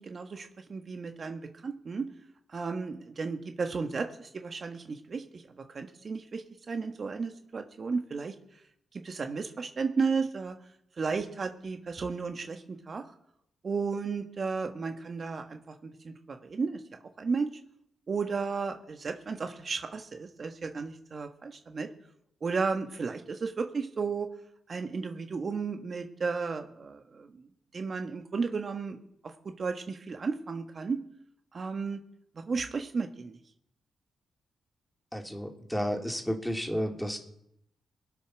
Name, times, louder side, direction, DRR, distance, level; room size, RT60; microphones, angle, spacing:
voice 1, 0.0-2.1 2.5-5.4 5.7-8.3 8.9-10.5 11.0-13.1 13.6-16.8 17.2-17.5 18.1-21.9 22.4-24.3 24.7-27.5 27.7-29.0 29.6-31.0 31.5-32.0 32.4-33.4, right 4 dB, 50° right, 6 dB, 1.4 m, -33 dB
voice 2, 35.1-37.2, equal, 5° left, 3 dB, 3.2 m, -32 dB
22.0 x 7.6 x 6.2 m, 0.78 s
supercardioid pair, 45°, 0 cm